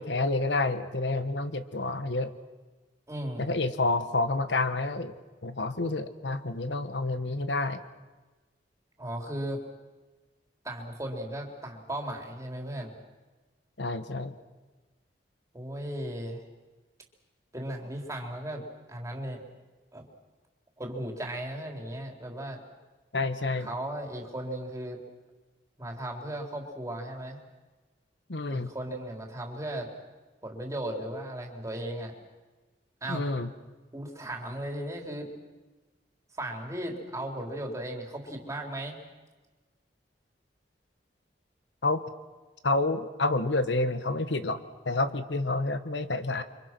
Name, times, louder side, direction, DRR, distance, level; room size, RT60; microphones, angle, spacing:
voice 1, 0.0-2.3 3.4-5.1 5.4-7.8 13.8-14.4 23.1-23.7 28.3-28.7 33.1-33.5 41.8-42.0 42.6-46.4, left 2 dB, 85° left, 10 dB, 1.5 m, -29 dB
voice 2, 3.1-3.5 9.0-9.6 10.6-13.0 15.5-16.4 17.5-18.6 18.9-19.4 19.9-20.0 20.8-22.6 23.6-25.0 25.8-27.4 28.5-29.9 30.4-32.1 33.0-33.3 33.9-35.3 36.3-39.0, right 1 dB, 20° right, 1 dB, 4.0 m, -36 dB
29.5 x 25.5 x 6.2 m, 1.2 s
head